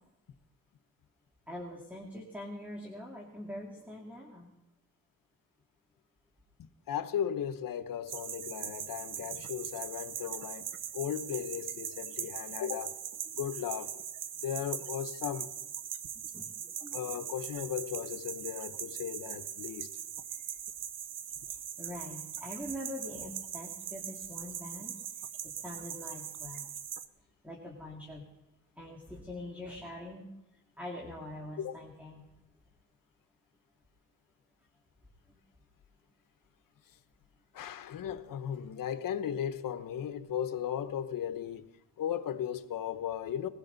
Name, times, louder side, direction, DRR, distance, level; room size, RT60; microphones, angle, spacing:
voice 1, 1.5-4.5 16.3-16.5 16.8-17.1 21.8-25.0 25.4-26.7 27.4-28.2 28.8-30.3 30.8-32.3 35.3-35.4, left 1 dB, 5° right, 2.6 m, -43 dB
voice 2, 6.9-10.7 10.9-12.9 13.3-14.0 14.4-15.5 16.9-19.9 31.6-31.8 37.5-41.7 42.0-43.5, left 9 dB, 80° left, 1.0 m, -36 dB
sound 1, 8.1-27.1, right 9 dB, 70° right, 0.8 m, -41 dB
21.0 x 16.5 x 4.0 m
cardioid pair, 105°, 33 cm